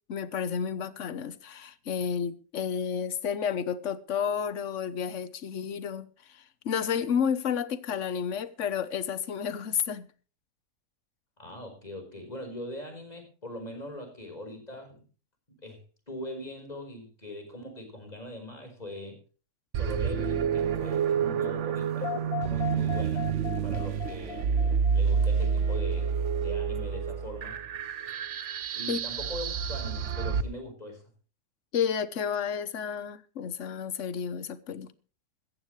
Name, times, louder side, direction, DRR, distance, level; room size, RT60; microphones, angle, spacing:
voice 1, 0.1-10.1 28.9-29.0 31.7-34.9, left 7 dB, 60° left, 1.3 m, -31 dB
voice 2, 11.4-15.0 15.6-15.8 16.1-19.2 19.8-22.1 22.4-23.4 23.6-24.4 24.9-27.6 28.7-31.0, left 1 dB, 25° left, 5.2 m, -41 dB
sound 1, 19.7-30.4, right 7 dB, 60° right, 1.1 m, -28 dB
sound 2, 22.0-26.0, left 13 dB, 75° left, 1.7 m, -38 dB
16.5 x 14.0 x 3.3 m
omnidirectional pair, 1.5 m